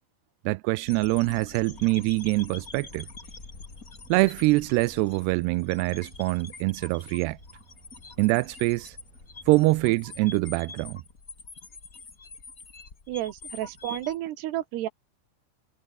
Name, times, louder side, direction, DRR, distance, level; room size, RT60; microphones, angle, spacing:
voice 1, 0.5-3.1 4.1-7.4 8.2-9.0 9.5-11.0, right 21 dB, 85° right, 2.4 m, -24 dB
sound 1, 0.9-14.2, left 4 dB, 25° left, 2.1 m, -45 dB
sound 2, 1.0-10.7, right 5 dB, 50° right, 7.6 m, -55 dB
voice 2, 13.1-14.9, right 14 dB, 70° right, 3.3 m, -31 dB
omnidirectional pair, 5.3 m